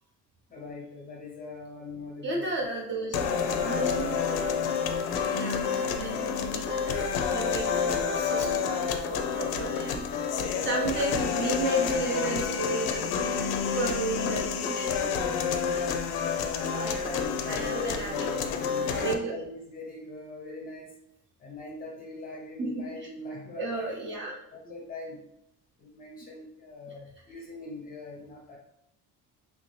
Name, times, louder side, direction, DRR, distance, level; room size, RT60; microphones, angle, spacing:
voice 1, 0.5-2.7 10.1-11.6 16.5-18.3 18.9-21.0 21.4-24.2 24.5-25.2 25.8-28.6, left 2 dB, 25° left, -2 dB, 0.6 m, -41 dB
voice 2, 2.2-4.2 5.3-10.1 10.7-13.2 13.7-15.0 16.8-17.1 17.5-18.4 18.7-19.4 22.6-22.7 23.6-24.4, right 2 dB, 30° right, -2 dB, 0.5 m, -33 dB
sound 1, 3.1-19.1, left 6 dB, 75° left, 0.5 m, -29 dB
3.3 x 2.6 x 3.1 m, 0.78 s
cardioid pair, 180°, 38 cm